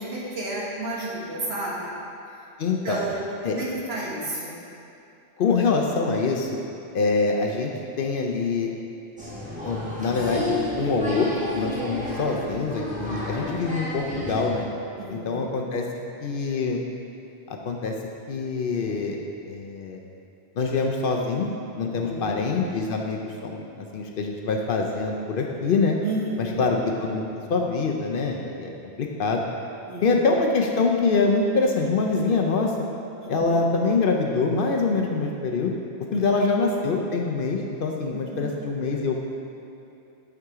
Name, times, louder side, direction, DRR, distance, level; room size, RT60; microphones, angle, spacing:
voice 1, 0.0-1.9 2.8-4.6 12.1-12.6 15.0-15.5 21.9-22.4 26.0-26.7 29.9-30.2 33.2-33.5 36.4-36.5 38.1-38.5, right 1 dB, 70° right, -6 dB, 1.7 m, -32 dB
voice 2, 2.6-3.0 3.4-3.6 5.4-6.5 6.9-7.7 8.0-8.7 9.6-14.7 15.1-15.8 16.2-16.8 17.7-17.9 18.3-19.2 19.5-20.0 20.6-21.5 21.7-25.9 26.4-28.7 29.0-29.4 30.0-32.7 33.3-35.7 36.1-39.2, left 4 dB, 60° left, 1 dB, 0.7 m, -24 dB
Applause, 9.2-14.5, left 1 dB, 5° right, 1.5 m, -31 dB
9.4 x 4.9 x 3.6 m, 2.7 s
omnidirectional pair, 1.1 m